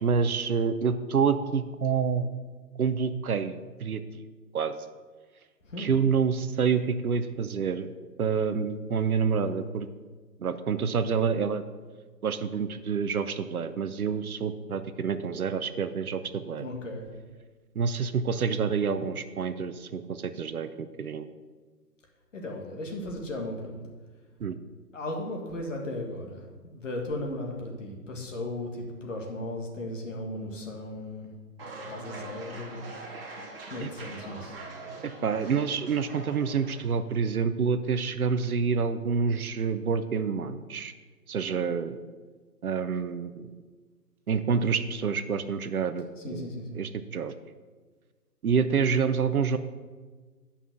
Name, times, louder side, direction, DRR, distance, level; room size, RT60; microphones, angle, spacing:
voice 1, 0.0-2.3 2.8-4.2 4.5-4.8 5.8-7.9 8.2-9.9 10.4-11.6 12.2-16.6 17.8-21.3 24.4-24.6 33.8-33.9 35.0-40.9 41.3-42.0 42.6-43.4 44.3-46.5 46.8-47.3 48.4-49.6, right 6 dB, 65° right, 11 dB, 0.7 m, -28 dB
voice 2, 5.6-6.0 16.6-17.1 22.3-23.8 24.9-31.3 31.9-33.2 33.7-34.6 46.2-46.8, left 1 dB, 50° left, 1 dB, 1.9 m, -36 dB
sound 1, 31.6-36.9, right 2 dB, 35° right, 1.4 m, -42 dB
9.0 x 5.7 x 6.1 m, 1.4 s
hypercardioid pair, 160°, 48 cm